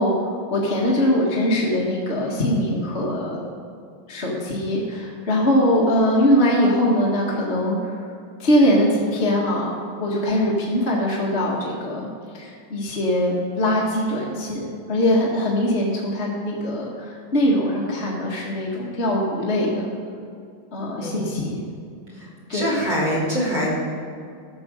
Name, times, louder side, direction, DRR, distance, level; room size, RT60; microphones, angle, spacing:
voice 1, 0.0-3.4 4.1-8.1 8.4-9.7 10.0-12.1 12.3-19.9 20.7-21.6 22.5-22.7, equal, 35° left, -4 dB, 1.7 m, -22 dB
voice 2, 21.0-21.3 22.2-23.7, equal, 60° right, -5 dB, 3.9 m, -24 dB
13.0 x 7.0 x 6.3 m, 2.3 s
omnidirectional pair, 2.2 m